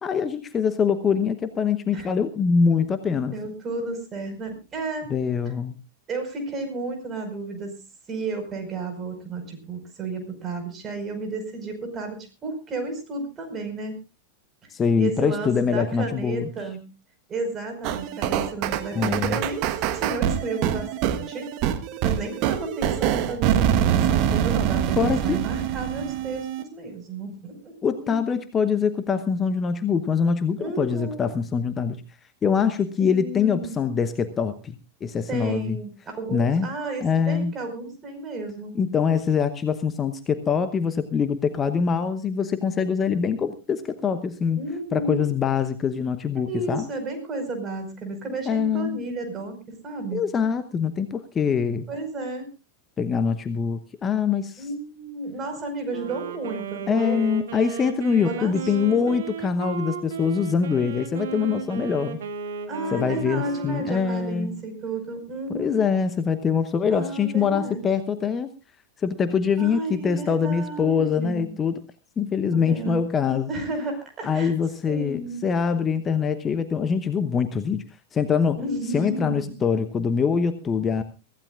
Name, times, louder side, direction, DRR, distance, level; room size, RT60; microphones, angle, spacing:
voice 1, 0.0-3.3 5.1-5.7 14.7-16.5 18.9-19.4 25.0-25.4 27.8-32.0 32.4-35.8 36.3-36.7 37.0-37.6 38.7-44.6 44.9-46.9 48.5-49.0 50.1-51.8 53.0-54.7 56.9-62.2 62.9-64.6 65.5-68.5 69.0-71.8 72.2-73.5 74.2-77.8 78.1-78.6 78.9-81.0, left 6 dB, 20° left, 11 dB, 0.9 m, -24 dB
voice 2, 3.3-5.1 6.1-7.8 8.1-13.9 15.0-16.9 17.3-19.6 19.9-21.5 22.0-27.7 28.0-28.2 30.6-31.3 33.0-33.7 35.3-38.7 44.6-45.3 46.5-50.2 51.9-52.4 54.6-57.2 58.2-59.2 62.7-65.8 66.9-67.8 69.6-71.5 72.5-73.0 73.5-74.5 74.9-75.4 78.6-79.6, right 2 dB, 25° right, 6 dB, 5.0 m, -32 dB
sound 1, 17.8-26.6, right 10 dB, 40° right, 1.3 m, -25 dB
Wind instrument woodwind instrument, 55.9-64.5, right 7 dB, 60° right, 2.3 m, -35 dB
23.5 x 15.5 x 2.4 m, 0.32 s
figure-of-eight pair, 90°, 0 cm